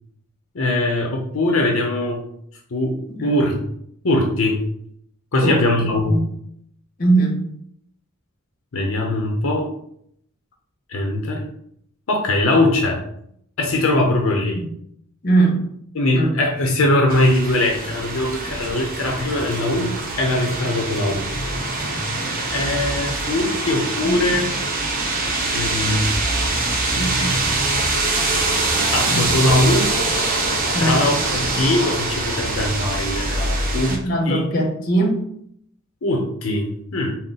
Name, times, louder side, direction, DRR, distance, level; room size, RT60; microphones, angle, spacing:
voice 1, 0.5-2.2 2.7-3.5 4.0-4.6 5.3-6.2 8.7-9.7 10.9-11.5 12.1-13.0 13.6-14.6 15.9-21.3 22.5-24.5 25.5-26.2 26.9-27.7 28.3-28.5 28.9-29.9 30.8-34.0 34.3-34.4 36.0-37.1, left 1 dB, 80° left, 0 dB, 0.6 m, -21 dB
voice 2, 3.1-3.4 5.4-5.6 6.1-6.2 7.0-7.5 14.5-14.6 15.2-15.7 16.1-16.3 24.0-24.4 26.9-27.5 28.7-29.4 30.7-31.2 33.9-35.3, right 2 dB, 45° left, 0 dB, 0.9 m, -21 dB
sound 1, 17.1-34.0, right 2 dB, 40° right, 0.7 m, -23 dB
4.0 x 2.0 x 3.8 m, 0.69 s
head